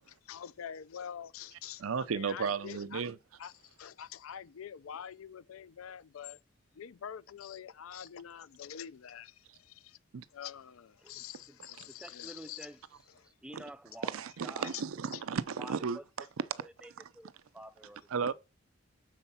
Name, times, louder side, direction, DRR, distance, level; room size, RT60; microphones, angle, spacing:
voice 1, 0.1-3.0 3.4-3.5 3.8-6.4 6.8-10.0 10.3-12.7 13.2-13.3 15.1-15.2, left 8 dB, 85° left, 0.4 m, -46 dB
voice 2, 1.8-3.2 10.1-10.2 13.5-13.6 14.0-16.3 18.1-18.3, right 6 dB, 90° right, 0.5 m, -34 dB
voice 3, 11.0-11.6 11.9-12.8 13.2-14.7 15.6-16.0 16.6-18.3, right 1 dB, 5° right, 0.3 m, -50 dB
6.5 x 4.4 x 5.6 m
head